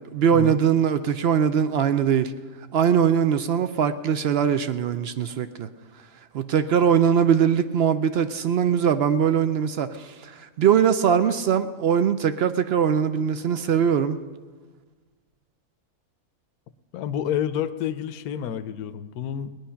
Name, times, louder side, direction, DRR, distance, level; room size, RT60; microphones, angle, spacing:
voice 1, 0.1-2.3 2.7-5.7 6.3-14.2, right 8 dB, 70° right, 11 dB, 0.6 m, -21 dB
voice 2, 16.9-19.6, left 9 dB, 75° left, 11 dB, 1.1 m, -29 dB
18.5 x 10.5 x 5.7 m, 1.4 s
omnidirectional pair, 1.6 m